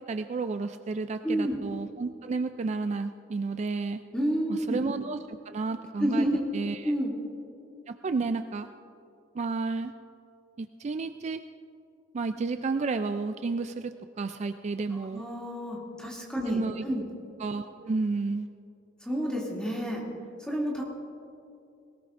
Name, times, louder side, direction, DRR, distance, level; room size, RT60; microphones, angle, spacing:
voice 1, 0.1-4.0 4.5-5.2 5.5-6.3 6.5-6.9 7.9-8.7 9.3-9.9 10.6-11.4 12.1-15.2 16.5-16.8 17.4-18.5, right 3 dB, 35° right, 9 dB, 0.3 m, -31 dB
voice 2, 1.2-1.6 4.1-4.8 6.0-6.4 6.8-7.1 15.1-17.0 19.0-20.0 20.4-20.8, equal, 5° left, -4 dB, 2.6 m, -29 dB
20.5 x 19.0 x 2.6 m, 2.6 s
head